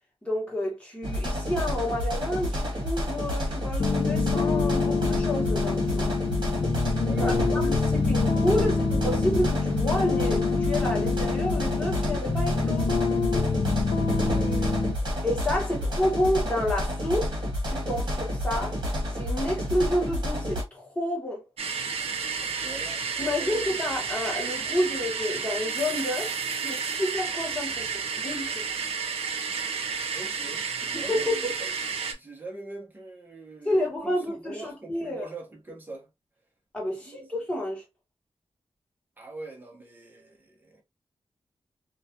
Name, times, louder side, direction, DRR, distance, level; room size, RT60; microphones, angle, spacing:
voice 1, 0.2-6.1 7.2-12.9 15.2-17.3 17.7-18.8 19.1-21.4 23.2-28.7 30.9-31.5 33.6-35.3 36.7-37.8, left 1 dB, 10° left, 1.0 m, -29 dB
sound 1, 1.0-20.6, equal, 50° right, 1.2 m, -30 dB
sound 2, 3.8-14.9, left 4 dB, 50° left, 0.4 m, -26 dB
voice 2, 7.0-7.7 8.1-8.7 14.0-15.2 15.8-15.9 22.4-23.7 30.1-31.8 32.1-36.1 36.9-37.3 39.2-40.8, right 3 dB, 20° right, 0.7 m, -43 dB
sound 3, 21.6-32.1, right 5 dB, 75° right, 0.5 m, -31 dB
2.3 x 2.2 x 2.6 m
wide cardioid pair, 165°, 10 cm